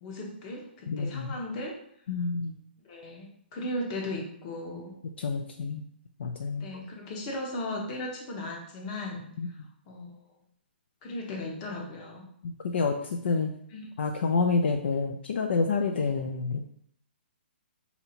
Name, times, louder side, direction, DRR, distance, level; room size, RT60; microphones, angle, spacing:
voice 1, 0.0-1.7 2.8-5.0 6.6-9.6 9.9-10.2 11.0-12.2 13.7-13.9, left 1 dB, 35° left, 1 dB, 1.0 m, -37 dB
voice 2, 0.9-1.4 2.1-2.5 5.2-5.8 6.2-6.7 9.4-9.5 12.4-13.5 14.0-16.6, left 4 dB, 70° left, 4 dB, 0.4 m, -28 dB
2.7 x 2.7 x 4.2 m, 0.67 s
hypercardioid pair, 140°, 6 cm